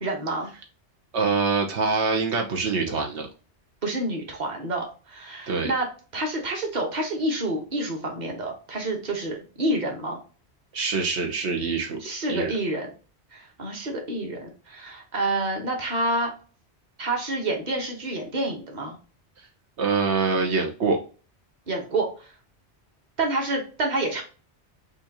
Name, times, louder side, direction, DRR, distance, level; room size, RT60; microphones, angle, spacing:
voice 1, 0.0-0.5 3.8-5.9 6.1-10.2 12.0-12.9 13.3-16.3 17.0-19.0 21.7-22.3 23.2-24.2, right 2 dB, 45° right, 1 dB, 1.3 m, -28 dB
voice 2, 1.1-3.3 5.5-5.7 10.7-12.0 12.3-12.6 19.8-21.0, right 4 dB, 80° right, 2 dB, 1.1 m, -24 dB
6.1 x 2.6 x 2.9 m, 0.36 s
omnidirectional pair, 1.1 m